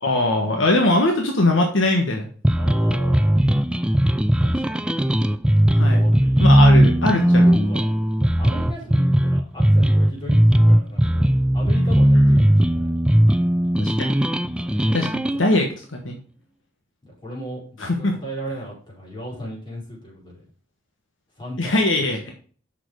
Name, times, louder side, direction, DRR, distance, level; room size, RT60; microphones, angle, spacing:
voice 1, 0.0-2.3 5.7-6.1 6.4-7.5 12.1-12.4 13.8-14.1 14.9-16.2 17.8-18.2 21.6-22.3, left 2 dB, 70° left, 2 dB, 1.4 m, -21 dB
sound 1, 2.4-15.4, equal, 5° right, 0.4 m, -17 dB
voice 2, 2.5-3.5 4.4-4.9 5.8-12.9 14.5-15.6 17.0-20.4 21.4-21.8, equal, 25° left, -4 dB, 4.7 m, -37 dB
6.6 x 6.1 x 4.7 m, 0.43 s
head